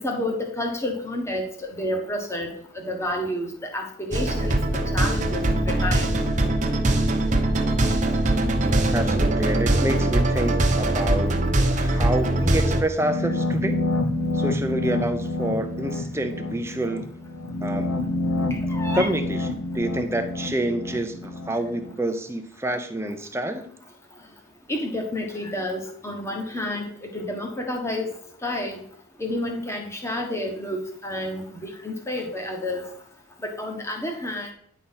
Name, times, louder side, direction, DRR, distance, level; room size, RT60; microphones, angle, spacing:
voice 1, 0.0-4.6 4.9-6.1 18.5-19.1 24.7-28.1 28.4-28.8 29.2-32.9 33.4-34.5, left 1 dB, 10° left, 2 dB, 1.3 m, -30 dB
sound 1, 4.1-12.8, right 1 dB, 35° right, 0.9 m, -22 dB
voice 2, 8.9-13.8 14.3-17.1 17.6-17.9 18.9-19.5 19.7-23.7, right 1 dB, 10° right, 7 dB, 0.6 m, -28 dB
sound 2, 13.0-21.9, left 2 dB, 75° left, 1.1 m, -28 dB
10.0 x 4.1 x 5.6 m, 0.65 s
head